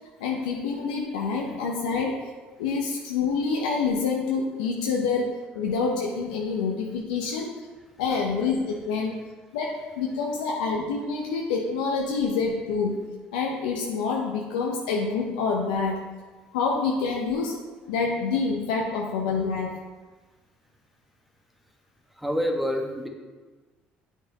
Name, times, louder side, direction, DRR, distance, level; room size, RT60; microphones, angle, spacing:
voice 1, 0.2-2.2 2.6-7.5 8.0-9.1 9.5-13.0 13.3-16.0 16.5-17.6 17.9-19.8, left 4 dB, 90° left, -1 dB, 0.7 m, -27 dB
voice 2, 22.1-23.1, equal, ahead, 2 dB, 1.3 m, -28 dB
8.5 x 5.5 x 3.9 m, 1.3 s
hypercardioid pair, 70°, 4 cm